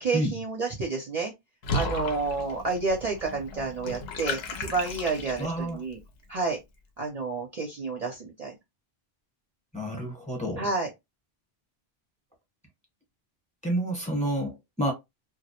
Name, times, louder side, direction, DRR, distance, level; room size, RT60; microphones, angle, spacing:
voice 1, 0.0-1.3 1.7-6.0 6.3-6.6 7.0-8.6 10.6-10.9, right 4 dB, 50° right, 0.5 m, -30 dB
Water / Bathtub (filling or washing), 1.6-5.7, left 2 dB, 80° left, 0.8 m, -34 dB
voice 2, 5.4-5.8 9.7-10.7 13.6-14.9, right 1 dB, 5° left, 0.9 m, -29 dB
2.3 x 2.0 x 2.7 m
omnidirectional pair, 1.0 m